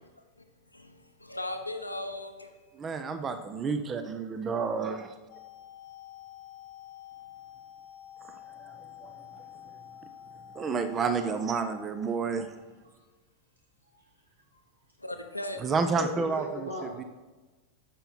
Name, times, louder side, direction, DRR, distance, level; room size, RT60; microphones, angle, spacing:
voice 1, 0.7-2.5 15.0-15.6, left 1 dB, 85° left, 6 dB, 0.9 m, -37 dB
voice 2, 2.7-5.1 8.3-9.4 10.5-12.5 15.6-16.4 17.0-17.1, right 5 dB, 25° right, 9 dB, 0.7 m, -30 dB
sound 1, 5.3-11.8, left 11 dB, 45° left, 0.8 m, -48 dB
voice 3, 13.8-14.6 16.0-17.0, left 1 dB, 85° right, -2 dB, 2.5 m, -39 dB
9.0 x 6.8 x 4.4 m, 1.2 s
figure-of-eight pair, 90°, 0 cm